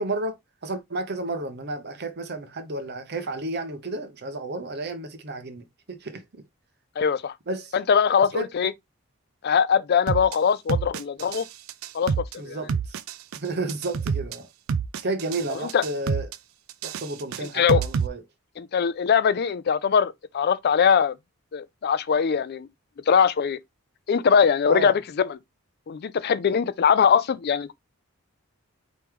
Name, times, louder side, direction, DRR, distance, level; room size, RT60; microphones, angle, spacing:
voice 1, 0.0-6.4 7.5-7.7 8.2-8.5 12.4-13.0 13.3-14.5 15.0-16.3 16.8-18.2 24.6-25.0, right 2 dB, 50° right, 0.8 m, -32 dB
voice 2, 7.0-7.3 7.7-8.7 9.4-11.4 11.9-12.1 12.4-12.6 15.7-15.8 17.5-17.8 18.6-21.1 21.5-22.7 23.1-23.6 24.1-25.4 25.9-27.7, left 7 dB, 50° left, 0.4 m, -21 dB
sound 1, 10.1-10.3 10.7-11.4 11.7-12.3 12.7-13.4 13.7-14.3 14.7-15.4 15.7-16.4 16.7-18.1, right 6 dB, 70° right, 0.4 m, -27 dB
4.5 x 3.1 x 3.5 m
head